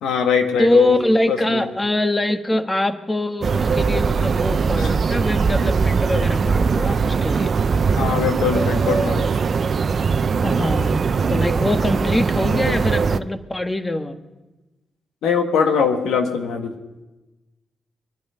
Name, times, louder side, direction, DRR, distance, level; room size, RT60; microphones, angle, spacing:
voice 1, 0.0-1.0 1.3-1.7 4.8-4.9 7.9-9.3 15.2-16.7, left 6 dB, 85° left, 4 dB, 1.7 m, -21 dB
voice 2, 0.6-7.5 10.4-14.2, left 1 dB, 20° left, 7 dB, 1.6 m, -23 dB
sound 1, 3.4-13.2, right 5 dB, 55° right, 0.6 m, -20 dB
23.5 x 10.5 x 5.7 m, 1.1 s
supercardioid pair, 50°, 0 cm